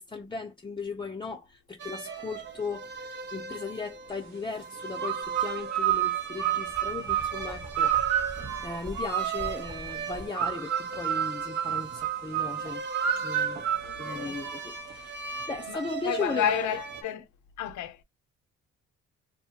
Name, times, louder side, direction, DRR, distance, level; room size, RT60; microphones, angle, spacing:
voice 1, 0.0-12.8 13.2-13.6 14.0-16.7, left 4 dB, 15° left, 0.6 m, -37 dB
sound 1, 1.8-17.0, right 5 dB, 35° right, 0.7 m, -39 dB
sound 2, 5.0-9.7 10.4-14.8, right 10 dB, 65° right, 1.0 m, -30 dB
Writing, 5.2-5.4 5.9-10.3, equal, 20° right, 1.2 m, -44 dB
voice 2, 13.8-14.4 15.7-17.3 17.6-18.0, left 10 dB, 70° left, 0.7 m, -31 dB
2.7 x 2.3 x 2.8 m
cardioid pair, 90°, 30 cm